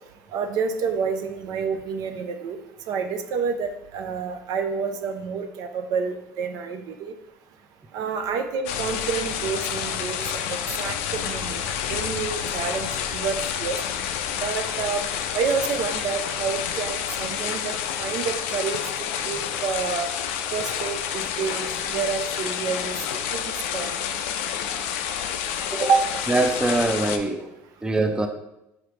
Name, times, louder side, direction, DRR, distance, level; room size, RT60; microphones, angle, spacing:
voice 1, 0.3-2.6 2.9-7.1 7.9-11.6 11.9-13.8 14.4-15.1 15.3-18.8 19.3-20.1 20.5-23.0 23.3-23.4 23.7-23.9 25.8-26.0, right 5 dB, 65° right, 6 dB, 0.5 m, -28 dB
sound 1, 8.7-27.2, left 9 dB, 90° left, 0.4 m, -29 dB
voice 2, 26.3-27.5 27.8-28.3, right 2 dB, 10° right, 6 dB, 0.5 m, -23 dB
5.0 x 3.2 x 3.1 m, 0.87 s
supercardioid pair, 95°, 7 cm